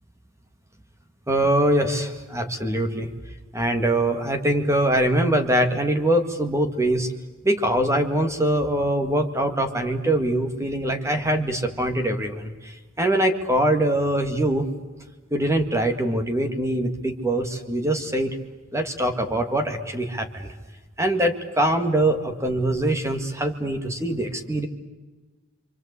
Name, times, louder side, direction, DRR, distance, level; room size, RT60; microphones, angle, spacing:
voice 1, 1.3-3.1 3.5-7.1 7.4-14.7 15.3-18.4 18.7-20.5 21.0-24.7, right 1 dB, 15° right, 5 dB, 2.0 m, -23 dB
28.0 x 25.0 x 8.3 m, 1.2 s
head